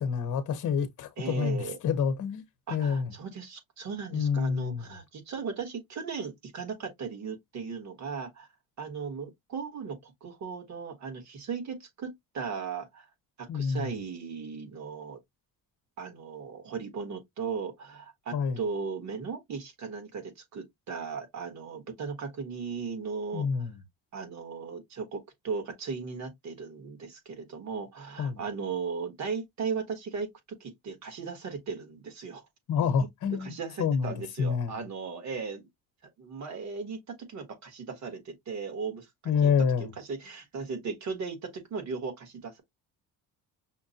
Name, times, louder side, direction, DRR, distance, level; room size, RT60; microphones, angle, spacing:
voice 1, 0.0-2.4 2.7-3.1 4.1-4.9 13.5-13.9 18.3-18.6 23.3-23.7 28.2-28.4 32.7-33.5 33.8-34.8 39.3-39.9, left 6 dB, 50° left, 0.9 m, -28 dB
voice 2, 1.2-1.8 2.7-8.5 8.8-13.1 13.4-15.2 16.0-23.7 24.1-32.4 33.0-33.1 33.4-35.7 36.2-39.1 39.4-39.5 39.8-42.6, right 5 dB, 45° right, 1.4 m, -37 dB
5.8 x 2.1 x 2.7 m
cardioid pair, 145°, 38 cm